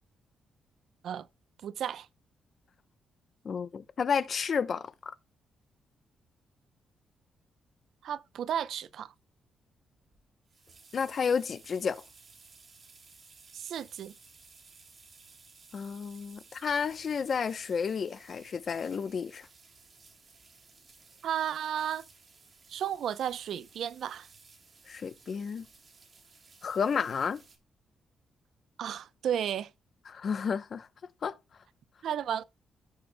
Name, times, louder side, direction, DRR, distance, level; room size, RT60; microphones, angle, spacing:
voice 1, 1.6-2.1 8.0-9.1 13.5-14.1 21.2-22.0 22.7-24.3 28.8-29.7 32.0-32.4, right 9 dB, 65° right, 0.6 m, -33 dB
voice 2, 3.4-5.1 10.9-12.0 15.7-19.5 24.9-25.6 26.6-27.4 30.1-30.9 31.2-31.3, left 6 dB, 40° left, 0.7 m, -31 dB
sound 1, 10.1-27.6, right 4 dB, 30° right, 2.8 m, -57 dB
17.5 x 6.7 x 2.2 m
cardioid pair, 165°, 0 cm